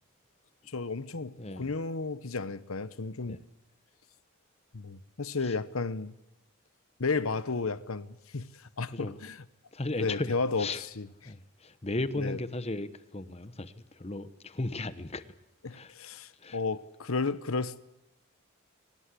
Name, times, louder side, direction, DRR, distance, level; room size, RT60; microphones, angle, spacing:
voice 1, 0.7-3.4 4.7-6.1 7.0-8.1 8.3-8.5 8.8-9.4 10.0-10.7 11.0-11.1 12.2-12.4 15.6-17.8, left 4 dB, 75° left, 1.0 m, -32 dB
voice 2, 1.4-1.7 3.3-3.4 5.4-5.6 8.9-9.2 9.7-10.8 11.2-15.4 15.7-15.9 16.3-16.6, left 2 dB, 30° left, 1.0 m, -36 dB
23.0 x 19.5 x 8.5 m
head